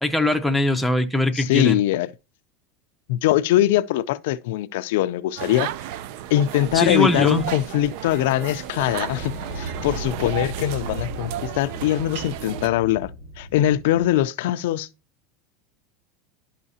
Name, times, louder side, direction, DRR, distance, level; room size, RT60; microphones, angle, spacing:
voice 1, 0.0-1.8 6.7-7.5, left 1 dB, ahead, 0.6 m, -21 dB
voice 2, 1.3-2.1 3.1-5.7 6.3-13.1 13.4-14.9, left 13 dB, 75° left, 0.4 m, -22 dB
sound 1, 5.4-12.7, right 12 dB, 60° right, 0.4 m, -34 dB
Subway metro underground, 6.4-10.5, right 2 dB, 40° right, 1.8 m, -41 dB
sound 2, 8.8-14.2, right 1 dB, 75° right, 4.1 m, -36 dB
11.0 x 5.6 x 2.7 m
supercardioid pair, 165°, 0 cm